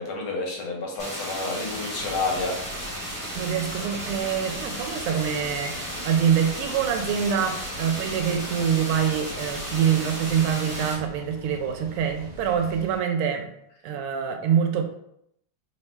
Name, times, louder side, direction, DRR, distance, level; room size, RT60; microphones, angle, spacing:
voice 1, 0.0-2.6, left 3 dB, 75° left, -1 dB, 1.7 m, -29 dB
sound 1, 1.0-10.9, equal, 30° left, 0.5 m, -34 dB
sound 2, 2.0-13.0, left 1 dB, 55° right, 1.3 m, -43 dB
voice 2, 3.3-13.5 13.8-14.8, right 8 dB, 85° right, 5 dB, 1.5 m, -25 dB
3.7 x 2.1 x 4.3 m, 0.75 s
omnidirectional pair, 2.4 m